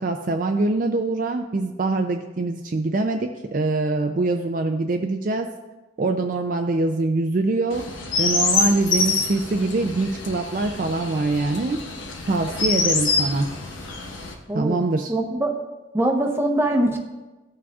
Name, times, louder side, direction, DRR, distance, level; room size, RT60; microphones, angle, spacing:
voice 1, 0.0-5.5 6.0-7.9 8.2-11.8 12.3-13.5 14.5-15.1, right 2 dB, 45° right, 4 dB, 0.4 m, -24 dB
Chirp tweet, 7.7-14.3, left 3 dB, 90° left, 1.1 m, -26 dB
voice 2, 14.5-14.8 15.1-15.5 15.9-17.0, right 1 dB, 10° right, 0 dB, 0.8 m, -22 dB
15.0 x 6.0 x 2.4 m, 1.1 s
head